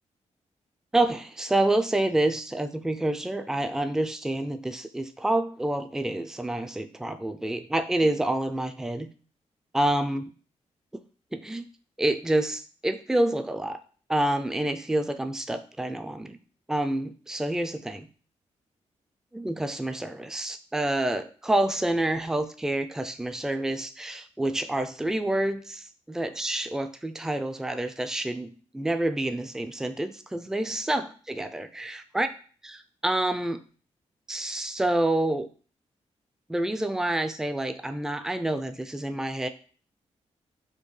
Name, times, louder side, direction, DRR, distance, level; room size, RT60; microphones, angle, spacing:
voice 1, 0.9-9.1 9.7-10.2 11.3-11.7 12.0-13.8 14.1-16.4 16.7-18.1 19.3-32.3 32.6-32.8 33.0-33.6 34.3-35.5 36.5-39.5, right 1 dB, 5° right, 9 dB, 0.4 m, -28 dB
4.4 x 2.6 x 3.2 m, 0.40 s
cardioid pair, 60°, 12 cm